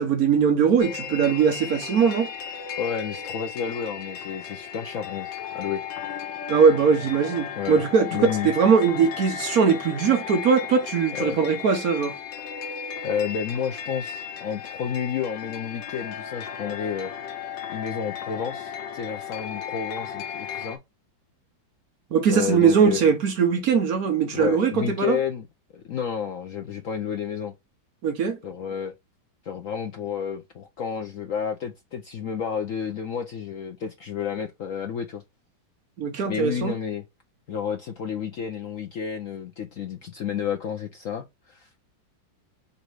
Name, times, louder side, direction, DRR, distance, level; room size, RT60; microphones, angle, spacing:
voice 1, 0.0-2.3 6.5-12.2 22.1-25.2 28.0-28.4 36.0-36.7, right 6 dB, 60° right, 1.2 m, -21 dB
sound 1, 0.8-20.8, left 8 dB, 90° left, 1.5 m, -35 dB
voice 2, 2.8-5.8 7.5-7.8 8.1-8.5 11.1-11.4 13.0-17.1 17.7-20.8 22.3-23.1 24.3-25.5 25.7-27.5 28.4-28.9 29.4-35.2 36.3-37.0 37.5-41.7, left 7 dB, 65° left, 0.8 m, -31 dB
4.1 x 2.7 x 4.6 m
omnidirectional pair, 2.0 m